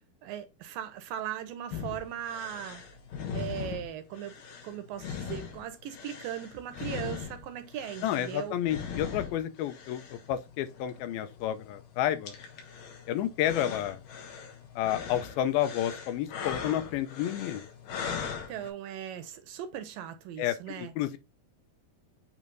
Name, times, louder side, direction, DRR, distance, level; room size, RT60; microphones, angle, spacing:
voice 1, 0.2-2.8 3.3-4.3 4.6-8.6 18.5-20.9, right 10 dB, 80° right, 2.3 m, -38 dB
sound 1, 1.7-18.7, left 6 dB, 70° left, 2.9 m, -40 dB
voice 2, 8.0-12.3 13.1-14.0 14.8-17.6 20.4-21.2, left 11 dB, 85° left, 2.6 m, -30 dB
8.8 x 3.1 x 3.9 m
omnidirectional pair, 4.3 m